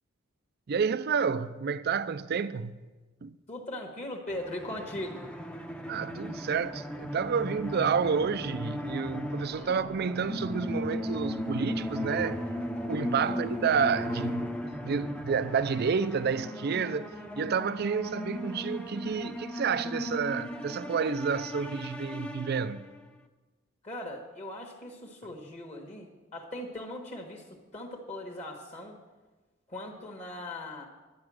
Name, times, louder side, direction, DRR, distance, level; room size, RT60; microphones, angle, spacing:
voice 1, 0.7-2.8 3.2-3.4 5.9-12.4 12.9-14.6 14.8-22.9, right 6 dB, 50° right, 0.4 m, -30 dB
voice 2, 3.5-5.3 9.6-9.7 13.2-13.4 23.8-27.5 27.7-29.0 29.7-30.9, left 1 dB, 35° left, 1.4 m, -39 dB
sound 1, 4.3-23.0, left 1 dB, 5° left, 0.7 m, -37 dB
11.5 x 9.5 x 6.3 m
head